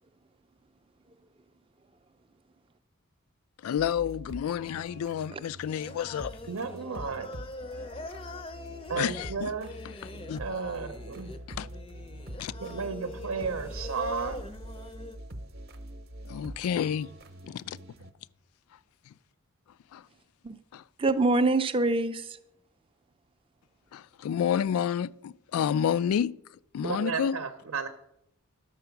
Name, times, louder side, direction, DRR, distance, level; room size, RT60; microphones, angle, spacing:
voice 1, 3.6-6.4 9.0-9.5 9.8-10.4 11.5-11.7 12.4-12.5 16.2-17.1 17.4-17.8 18.7-18.8 19.1-19.2 19.9-20.1 20.7-20.9 23.9-27.4, left 8 dB, 90° left, 0.3 m, -30 dB
sound 1, 3.8-18.1, right 1 dB, 50° right, 0.8 m, -44 dB
Singing, 5.7-15.2, left 2 dB, 25° left, 0.5 m, -43 dB
voice 2, 6.5-7.3 8.9-9.7 10.4-11.3 12.6-14.4 26.8-27.9, right 5 dB, 85° right, 0.7 m, -33 dB
voice 3, 21.0-22.4, right 2 dB, 25° right, 0.4 m, -25 dB
11.0 x 6.8 x 5.8 m
head